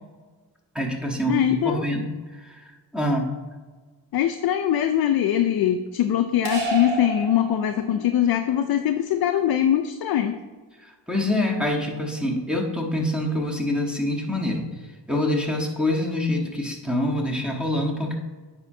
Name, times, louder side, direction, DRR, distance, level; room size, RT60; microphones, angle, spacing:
voice 1, 0.7-3.3 10.8-14.7 15.1-18.1, left 1 dB, ahead, 1 dB, 1.1 m, -26 dB
voice 2, 1.3-1.8 4.1-10.4, left 10 dB, 55° left, 7 dB, 0.5 m, -22 dB
sound 1, 6.4-8.1, right 2 dB, 80° right, 1.7 m, -30 dB
9.5 x 4.3 x 2.7 m, 1.4 s
cardioid pair, 85°, 46 cm